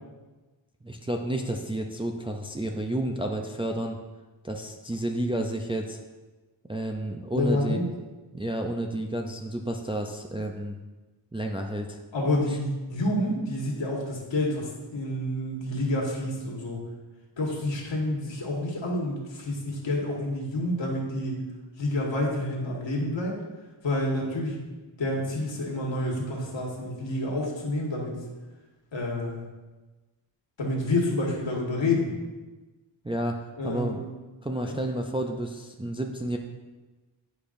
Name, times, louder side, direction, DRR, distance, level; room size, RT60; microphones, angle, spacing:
voice 1, 0.8-4.0 4.4-6.0 6.7-7.8 8.3-10.8 11.3-12.0 33.0-33.4 33.6-34.0 34.4-36.4, right 1 dB, 15° right, 2 dB, 0.3 m, -31 dB
voice 2, 7.3-7.9 12.1-16.8 17.4-21.4 21.8-23.4 23.8-24.6 25.0-28.1 28.9-29.4 30.6-32.1 33.6-34.0 34.6-34.8, left 1 dB, 70° left, -2 dB, 1.6 m, -28 dB
10.0 x 5.1 x 2.5 m, 1.2 s
wide cardioid pair, 130°, 47 cm